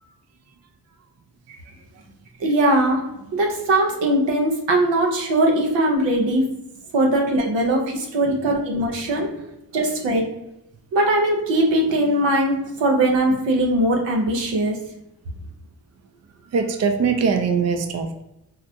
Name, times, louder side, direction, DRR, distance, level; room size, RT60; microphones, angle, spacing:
voice 1, 2.4-3.0 3.3-6.5 6.9-9.3 9.7-10.2 10.9-14.8, right 1 dB, 85° right, 0 dB, 0.8 m, -20 dB
voice 2, 16.4-18.2, right 5 dB, 40° right, 6 dB, 0.5 m, -22 dB
3.9 x 2.1 x 2.7 m, 0.88 s
supercardioid pair, 40°, 43 cm